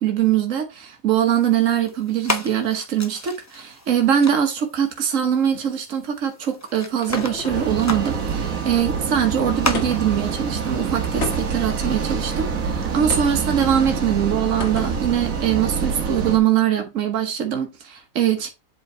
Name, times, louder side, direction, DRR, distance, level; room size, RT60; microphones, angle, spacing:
voice 1, 0.0-18.5, right 9 dB, 70° right, 1.5 m, -22 dB
sound 1, 1.4-13.0, left 2 dB, 15° left, 0.6 m, -35 dB
sound 2, 6.3-7.9 9.7-10.2 11.2-11.8 13.1-13.5 14.6-15.1, left 3 dB, 55° left, 1.7 m, -32 dB
sound 3, 7.5-16.4, right 6 dB, 90° right, 1.7 m, -26 dB
7.8 x 3.8 x 4.4 m
omnidirectional pair, 1.4 m